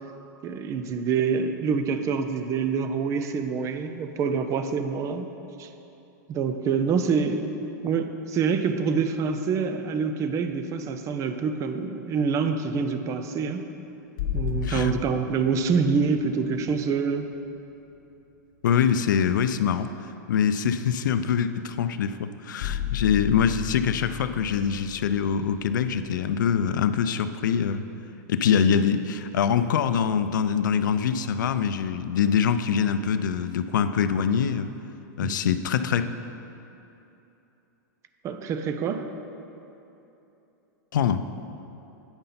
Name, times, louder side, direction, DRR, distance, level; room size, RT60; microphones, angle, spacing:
voice 1, 0.4-5.3 5.6-5.7 6.3-7.5 7.8-13.6 14.3-17.3 35.2-35.6 38.2-39.1, right 5 dB, 30° right, 8 dB, 0.6 m, -26 dB
sound 1, 14.2-18.0 21.6-21.7 22.6-26.5, left 10 dB, 65° left, 0.9 m, -34 dB
voice 2, 18.6-19.9 20.3-27.8 28.3-34.7 35.2-36.1 40.9-41.2, left 7 dB, 85° left, 11 dB, 0.5 m, -24 dB
8.9 x 5.4 x 5.8 m, 3.0 s
hypercardioid pair, 125°, 10 cm